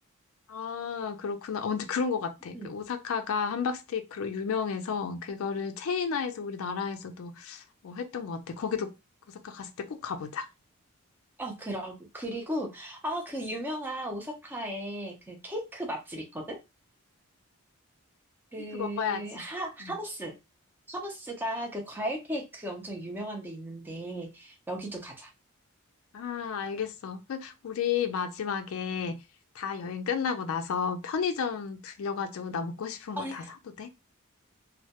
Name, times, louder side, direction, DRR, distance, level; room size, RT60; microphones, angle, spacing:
voice 1, 0.5-8.9 9.3-10.5 18.7-19.4 19.8-19.9 26.1-29.2 29.5-33.4 33.8-33.9, left 6 dB, 65° left, 0.3 m, -32 dB
voice 2, 11.4-16.6 18.5-20.3 20.9-25.3 33.2-33.5, right 1 dB, 10° right, 0.4 m, -36 dB
2.2 x 2.1 x 2.8 m
head